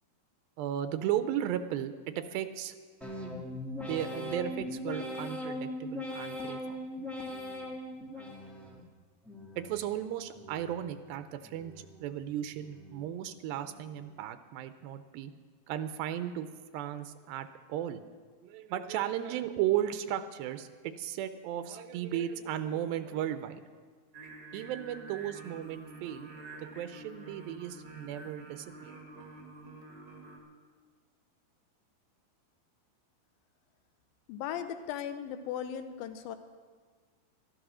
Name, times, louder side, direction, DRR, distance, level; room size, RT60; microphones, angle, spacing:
voice 1, 0.6-2.8 3.8-6.8 8.2-8.8 9.6-15.3 15.7-16.5 16.7-18.0 18.4-23.6 24.5-26.3 26.6-29.0, right 11 dB, 85° right, 10 dB, 2.4 m, -35 dB
sound 1, 3.0-8.8 9.2-9.9 10.3-11.0 11.4-12.1 12.5-13.1 13.6-14.2, left 1 dB, ahead, 0.3 m, -40 dB
Singing, 24.1-30.4, right 2 dB, 45° right, 1.3 m, -48 dB
voice 2, 34.3-36.4, left 9 dB, 90° left, 9 dB, 2.6 m, -37 dB
13.0 x 13.0 x 6.1 m, 1.6 s
omnidirectional pair, 4.1 m